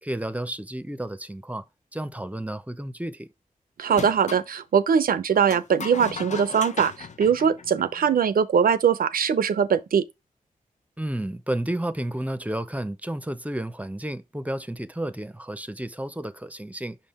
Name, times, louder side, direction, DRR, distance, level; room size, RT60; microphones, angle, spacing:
voice 1, 0.0-1.6 1.9-3.3 11.0-17.0, right 1 dB, 10° right, 0.7 m, -31 dB
voice 2, 3.8-10.0, right 7 dB, 90° right, 0.6 m, -21 dB
sound 1, 3.9-4.5 5.5-8.2, left 5 dB, 55° left, 0.6 m, -37 dB
6.0 x 3.7 x 4.3 m
cardioid pair, 50°, 15 cm